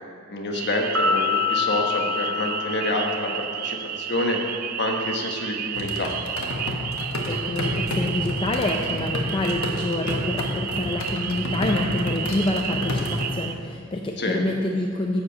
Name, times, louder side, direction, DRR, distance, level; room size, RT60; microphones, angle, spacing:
voice 1, 0.3-4.4 4.8-6.1 14.2-14.4, left 1 dB, 55° left, 1 dB, 1.2 m, -27 dB
sound 1, 0.5-13.5, right 9 dB, 40° right, 0.3 m, -32 dB
Piano, 0.9-3.5, left 6 dB, 80° right, 1.6 m, -26 dB
sound 2, 5.8-13.3, left 1 dB, 75° left, 1.3 m, -30 dB
voice 2, 7.3-15.2, left 1 dB, 25° left, 1 dB, 0.5 m, -27 dB
10.5 x 4.9 x 7.3 m, 2.3 s
head